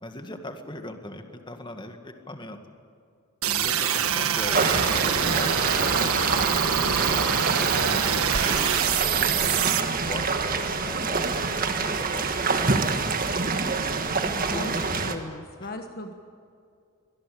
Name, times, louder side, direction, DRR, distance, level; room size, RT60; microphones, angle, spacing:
voice 1, 0.0-2.6 3.4-8.6 9.2-12.9 14.0-15.1 15.6-15.7, left 1 dB, 20° left, 6 dB, 1.9 m, -40 dB
sound 1, 3.4-9.8, right 8 dB, 75° right, 1.5 m, -25 dB
sound 2, 4.5-15.1, right 4 dB, 40° right, 1.7 m, -26 dB
voice 2, 14.1-16.1, left 1 dB, 45° left, 5 dB, 1.3 m, -37 dB
25.0 x 18.0 x 8.4 m, 2.4 s
head